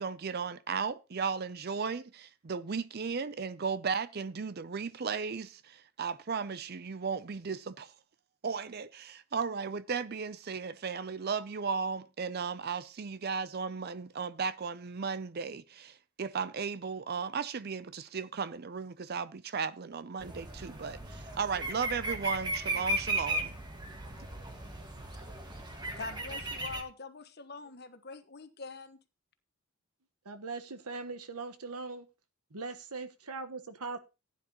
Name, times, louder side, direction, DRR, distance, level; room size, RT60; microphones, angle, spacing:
voice 1, 0.0-7.9 8.4-23.6, right 5 dB, 45° right, 0.5 m, -35 dB
sound 1, 20.2-26.8, right 1 dB, 20° right, 1.6 m, -36 dB
voice 2, 26.0-29.0, left 4 dB, 45° left, 1.2 m, -44 dB
voice 3, 30.2-32.1 32.5-34.0, right 3 dB, 85° right, 1.3 m, -40 dB
15.5 x 10.0 x 3.0 m
head